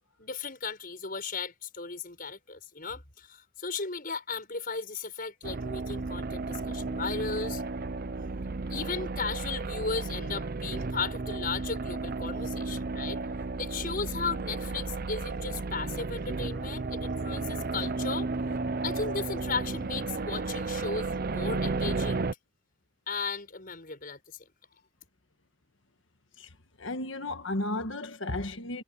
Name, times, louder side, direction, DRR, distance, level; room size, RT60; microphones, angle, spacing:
voice 1, 0.2-7.6 8.7-13.2 13.6-18.3 18.8-22.2 23.1-24.2, left 4 dB, 45° left, 5.6 m, -36 dB
sound 1, 5.4-22.3, right 3 dB, 45° right, 0.6 m, -33 dB
voice 2, 26.8-28.8, left 2 dB, 65° left, 1.6 m, -34 dB
head